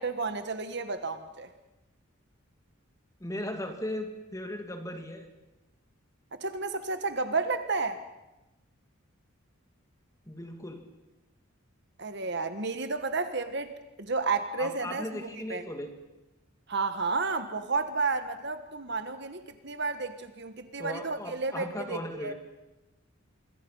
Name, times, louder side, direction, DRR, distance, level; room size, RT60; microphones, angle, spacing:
voice 1, 0.0-1.5 6.4-8.0 12.0-15.6 16.7-22.3, right 4 dB, 50° right, 9 dB, 1.5 m, -32 dB
voice 2, 3.2-5.3 10.3-10.9 14.6-15.9 20.8-22.3, left 1 dB, 15° left, 5 dB, 2.2 m, -37 dB
26.5 x 24.0 x 5.6 m, 1.0 s
head